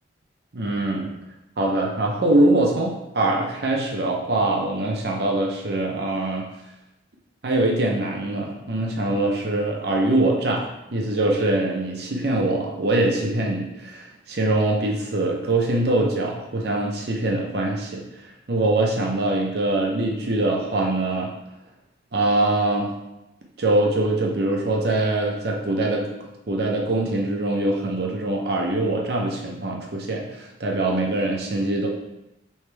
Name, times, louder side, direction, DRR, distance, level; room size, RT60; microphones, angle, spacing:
voice 1, 0.5-1.1 1.6-6.5 7.4-10.7 10.9-21.3 22.1-22.9 23.6-26.1 26.5-31.9, right 2 dB, 65° right, -1 dB, 0.6 m, -23 dB
3.3 x 3.1 x 4.5 m, 0.92 s
head